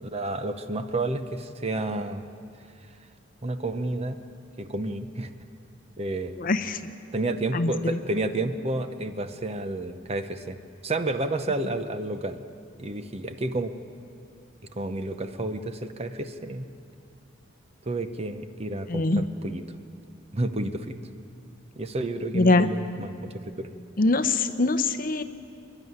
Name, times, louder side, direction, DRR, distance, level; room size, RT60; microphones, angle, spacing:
voice 1, 0.0-2.3 3.4-4.2 4.6-5.3 6.0-6.4 7.1-10.6 10.8-12.4 12.8-13.7 14.8-16.7 17.9-19.6 20.3-21.0 21.8-23.7, right 2 dB, 30° right, 9 dB, 0.8 m, -30 dB
voice 2, 6.4-6.8 7.5-8.0 18.9-19.2 22.3-22.7 24.0-25.2, left 2 dB, 45° left, 10 dB, 0.8 m, -23 dB
26.5 x 11.0 x 9.6 m, 2.5 s
head